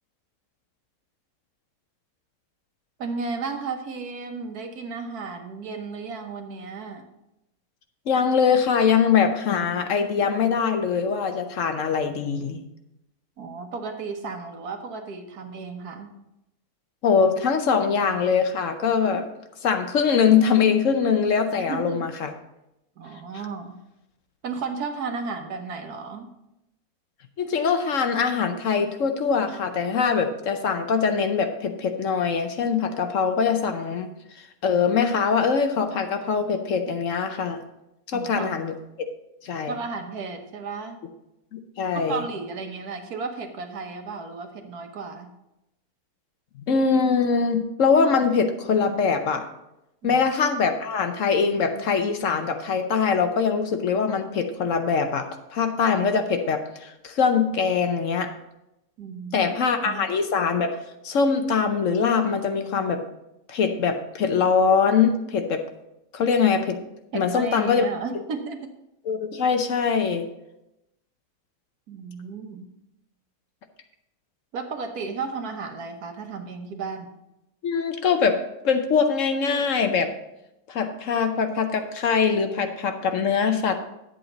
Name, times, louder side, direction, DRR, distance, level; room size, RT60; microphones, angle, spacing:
voice 1, 3.0-7.1 13.4-16.1 21.6-22.0 23.0-23.8 24.4-26.3 38.1-38.5 39.7-41.0 41.9-45.3 50.0-50.2 59.0-59.5 59.8-60.1 67.1-68.7 71.9-72.7 74.5-77.1, right 4 dB, 75° right, 5 dB, 1.6 m, -34 dB
voice 2, 8.1-12.6 17.0-19.3 19.6-22.3 27.4-34.1 34.4-37.6 38.1-39.1 39.4-39.7 41.5-42.2 46.7-49.5 50.0-58.3 59.3-60.8 61.0-63.0 63.5-65.6 66.1-66.8 67.1-67.8 69.1-70.3 77.6-78.4 78.6-80.1 80.7-83.8, left 6 dB, 60° left, 7 dB, 1.0 m, -23 dB
10.0 x 7.9 x 3.9 m, 0.89 s
omnidirectional pair, 1.6 m